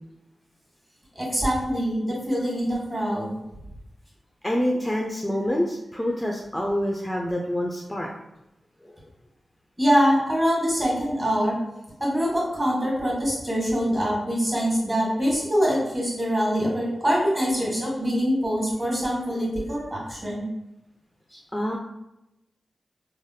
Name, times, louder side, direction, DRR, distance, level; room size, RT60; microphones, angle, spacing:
voice 1, 1.1-3.3 9.8-11.6 12.0-20.4 21.3-21.4, equal, 30° right, -5 dB, 1.4 m, -24 dB
voice 2, 4.4-8.1 8.8-8.9 21.5-21.8, equal, 5° left, -1 dB, 0.4 m, -26 dB
3.2 x 2.1 x 2.7 m, 0.90 s
cardioid pair, 65°, 0 cm